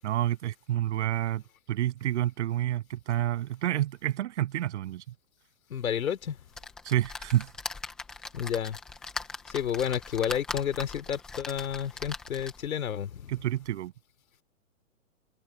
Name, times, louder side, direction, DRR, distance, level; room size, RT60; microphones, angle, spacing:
voice 1, 0.0-1.4 1.7-5.0 6.8-7.5 13.3-13.9, right 13 dB, 55° right, 7.8 m, -29 dB
voice 2, 5.7-6.4 8.3-8.8 9.5-13.3, left 8 dB, 80° left, 3.1 m, -31 dB
sound 1, 6.5-12.8 13.3-13.4 13.7-13.8, left 4 dB, ahead, 0.4 m, -40 dB
hypercardioid pair, 150°, 41 cm